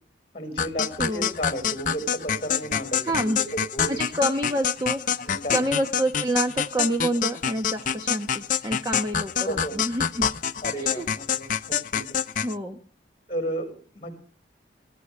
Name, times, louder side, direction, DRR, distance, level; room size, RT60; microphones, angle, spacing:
voice 1, 0.3-3.5 3.7-4.0 5.1-5.7 9.4-9.8 10.6-12.2 12.4-12.5 13.3-14.1, equal, 25° left, 6 dB, 5.4 m, -33 dB
sound 1, 0.6-12.5, left 7 dB, 40° left, 0.7 m, -27 dB
voice 2, 1.0-1.3 3.0-3.4 3.9-10.2 10.8-11.0 12.4-12.8, right 1 dB, 20° right, 4 dB, 1.2 m, -28 dB
26.0 x 15.5 x 3.3 m, 0.40 s
head